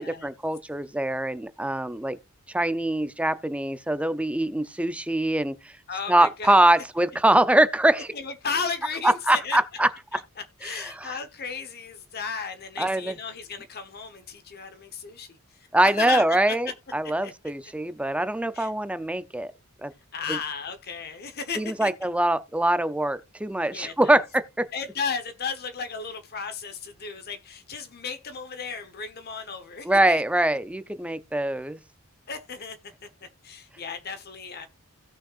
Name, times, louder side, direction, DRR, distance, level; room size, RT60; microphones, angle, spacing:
voice 1, 0.0-2.2 2.5-5.6 6.1-8.1 9.0-9.9 10.6-11.1 12.8-13.1 15.7-19.5 19.8-19.9 21.6-24.6 29.9-31.8, right 1 dB, 5° right, 0.5 m, -23 dB
voice 2, 5.9-6.6 8.1-9.6 10.1-15.4 15.8-16.7 17.2-17.3 18.5-18.7 20.1-21.9 23.7-24.2 24.7-30.2 32.3-34.7, left 5 dB, 45° left, 1.0 m, -34 dB
16.5 x 6.3 x 2.4 m
head